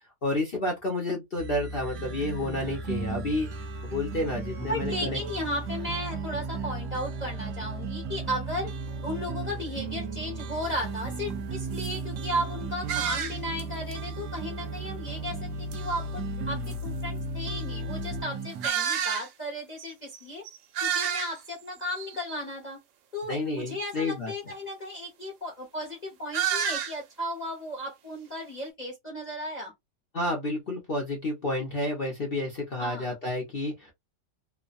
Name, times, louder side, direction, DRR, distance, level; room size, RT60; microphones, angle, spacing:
voice 1, 0.2-3.5 3.8-5.2 23.3-24.3 30.1-33.9, left 2 dB, 50° left, 0.7 m, -30 dB
sound 1, 1.4-18.2, left 1 dB, 55° right, 1.0 m, -38 dB
sound 2, 1.9-18.7, right 7 dB, 70° right, 1.2 m, -38 dB
voice 2, 2.8-3.4 4.7-8.7 9.0-16.2 16.5-20.4 20.8-22.8 23.1-29.7 32.8-33.1, equal, 30° left, 1.0 m, -35 dB
sound 3, 10.6-10.7 11.3-11.4 11.7-11.9 12.9-13.6 13.9-14.0 15.7-15.8 16.6-16.7 18.6-19.3 19.8-19.9 20.1-20.2 20.4-21.5 22.0-22.4 26.3-27.0, right 9 dB, 90° right, 1.4 m, -29 dB
3.2 x 2.1 x 2.4 m
omnidirectional pair, 1.9 m